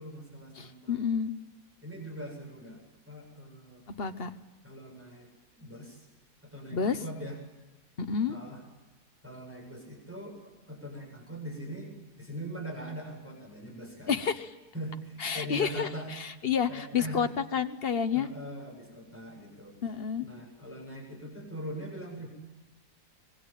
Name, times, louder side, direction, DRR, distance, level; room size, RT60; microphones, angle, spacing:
voice 1, 0.0-1.0 1.8-2.8 3.1-3.8 4.6-5.3 5.6-6.1 6.4-7.4 8.3-8.6 9.2-10.4 10.7-14.2 14.7-16.1 16.7-17.2 18.1-19.8 20.2-22.3, right 1 dB, 10° right, 1 dB, 8.0 m, -41 dB
voice 2, 0.6-1.3 4.0-4.3 6.7-7.0 8.0-8.4 14.1-14.5 15.2-18.3 19.8-20.3, left 7 dB, 40° left, 10 dB, 1.2 m, -30 dB
26.0 x 22.0 x 9.1 m, 1.2 s
omnidirectional pair, 1.7 m